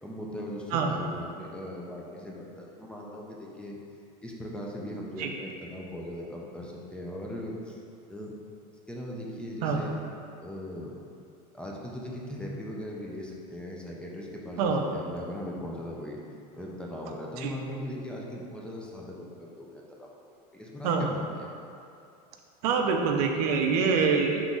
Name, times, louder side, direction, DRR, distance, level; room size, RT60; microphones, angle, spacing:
voice 1, 0.0-3.8 4.2-7.8 8.1-8.3 8.9-10.0 10.4-10.9 11.5-16.2 16.6-20.1 20.5-21.5, left 1 dB, 5° left, -3 dB, 0.4 m, -39 dB
voice 2, 22.6-24.4, right 5 dB, 80° right, 3 dB, 0.5 m, -25 dB
3.8 x 3.0 x 3.7 m, 2.5 s
supercardioid pair, 135°, 20 cm